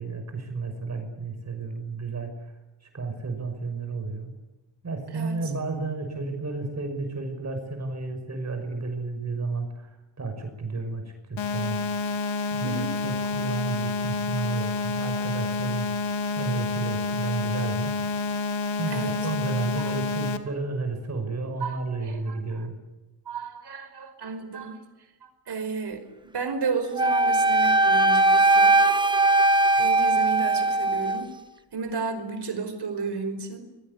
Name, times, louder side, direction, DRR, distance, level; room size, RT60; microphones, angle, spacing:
voice 1, 0.0-2.5 2.9-4.3 4.8-11.8 12.5-17.9 18.7-22.8, right 3 dB, 35° right, 5 dB, 5.9 m, -32 dB
sound 1, 11.4-20.4, left 4 dB, 80° left, 2.3 m, -29 dB
voice 2, 12.6-13.0 18.9-19.2 19.8-19.9 21.6-22.7 23.3-24.8 25.2-28.8 29.8-31.3 31.7-33.7, right 4 dB, 60° right, 9 dB, 5.1 m, -33 dB
Wind instrument woodwind instrument, 27.0-31.2, right 2 dB, 10° right, 1.4 m, -20 dB
29.5 x 22.5 x 8.3 m, 1.1 s
wide cardioid pair, 120°, 46 cm